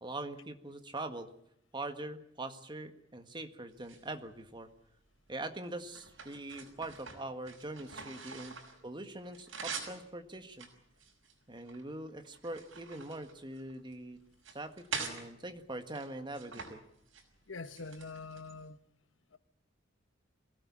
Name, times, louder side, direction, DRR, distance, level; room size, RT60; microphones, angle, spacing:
voice 1, 0.0-1.3 1.7-4.7 5.3-8.6 8.8-10.7 11.5-14.2 14.5-16.8, right 2 dB, 25° right, 1.7 m, -43 dB
sound 1, 3.7-4.7 5.3-8.8 9.1-10.0 10.5-11.8 12.2-13.9 14.3-15.2 15.9-16.7 17.0-17.2 17.6-18.6, right 5 dB, 85° right, 5.8 m, -45 dB
voice 2, 17.5-18.8 19.3-19.4, left 3 dB, 75° left, 1.1 m, -44 dB
23.0 x 17.0 x 8.6 m
head